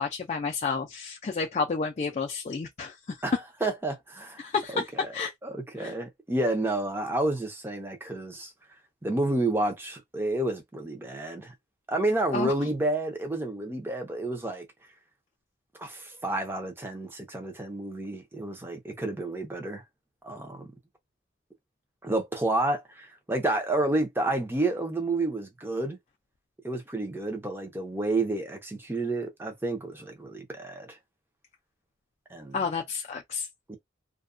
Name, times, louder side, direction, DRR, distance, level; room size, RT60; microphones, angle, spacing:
voice 1, 0.0-3.2 4.4-5.3 5.8-5.9 12.3-12.5 32.5-33.5, left 5 dB, 35° left, 0.3 m, -30 dB
voice 2, 3.2-5.1 5.4-8.5 9.0-11.5 11.9-14.7 15.8-19.8 20.2-20.7 22.0-26.0 26.6-30.9 32.3-32.6 33.7-33.8, right 2 dB, 10° right, 0.6 m, -30 dB
2.3 x 2.2 x 2.4 m
head